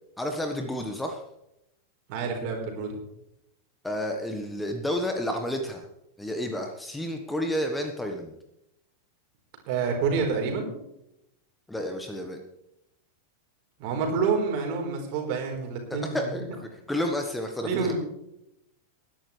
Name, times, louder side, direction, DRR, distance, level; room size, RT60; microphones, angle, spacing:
voice 1, 0.2-1.2 3.8-5.9 6.2-8.3 11.7-12.4 15.9-18.0, left 1 dB, 5° left, 4 dB, 1.3 m, -31 dB
voice 2, 2.1-3.0 9.7-10.7 13.8-16.4 17.6-18.0, right 5 dB, 45° right, 1 dB, 4.1 m, -28 dB
20.0 x 11.5 x 3.3 m, 0.84 s
figure-of-eight pair, 90°, 0 cm